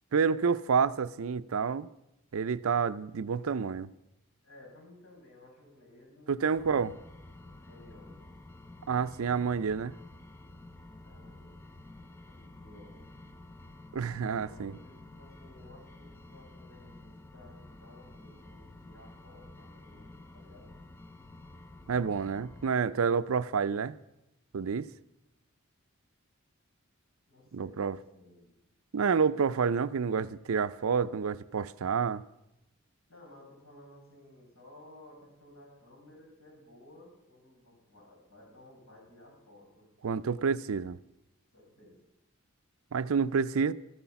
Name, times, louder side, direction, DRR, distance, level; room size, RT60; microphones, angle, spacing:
voice 1, 0.1-1.9 2.3-3.9 6.3-6.9 8.9-9.9 13.9-14.8 21.9-24.0 24.5-24.9 27.5-28.0 28.9-32.2 40.0-41.0 42.9-43.7, right 6 dB, 70° right, 0.5 m, -29 dB
voice 2, 4.4-6.4 7.4-8.3 11.0-11.6 12.3-13.1 14.2-20.7 27.3-28.5 33.1-39.9 41.5-42.0, left 1 dB, 80° left, 6.9 m, -56 dB
sound 1, 6.6-22.7, left 2 dB, 10° left, 0.5 m, -51 dB
14.0 x 11.5 x 5.8 m
head